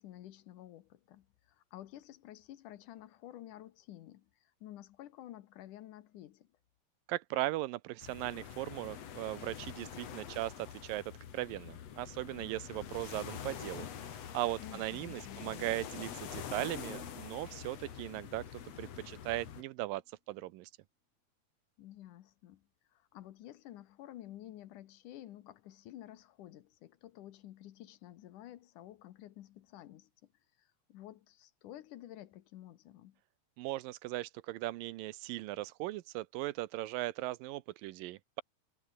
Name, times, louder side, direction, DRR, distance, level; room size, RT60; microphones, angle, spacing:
voice 1, 0.0-6.5 14.6-15.7 21.8-30.3 30.6-33.2, left 13 dB, 75° left, 2.4 m, -51 dB
voice 2, 7.1-11.0 11.3-20.0 20.3-20.7 33.6-38.4, right 17 dB, 85° right, 2.5 m, -38 dB
sound 1, 8.0-19.6, left 9 dB, 55° left, 2.6 m, -46 dB
sound 2, 16.0-19.7 20.1-20.2, left 5 dB, 40° left, 1.0 m, -54 dB
omnidirectional pair, 4.0 m